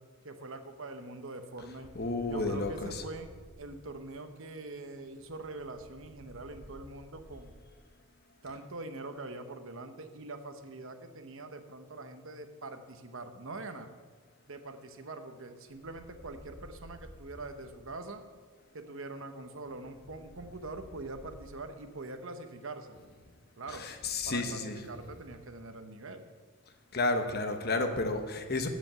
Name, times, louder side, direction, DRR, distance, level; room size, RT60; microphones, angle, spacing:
voice 1, 0.2-1.9 2.3-3.3 3.6-7.5 8.4-13.9 14.5-18.2 18.7-22.9 23.6-23.9 24.3-26.2, right 2 dB, 60° right, 7 dB, 0.9 m, -43 dB
voice 2, 1.9-3.0 23.7-24.8 26.9-28.7, left 2 dB, 45° left, 6 dB, 1.0 m, -31 dB
15.0 x 5.2 x 6.7 m, 1.5 s
head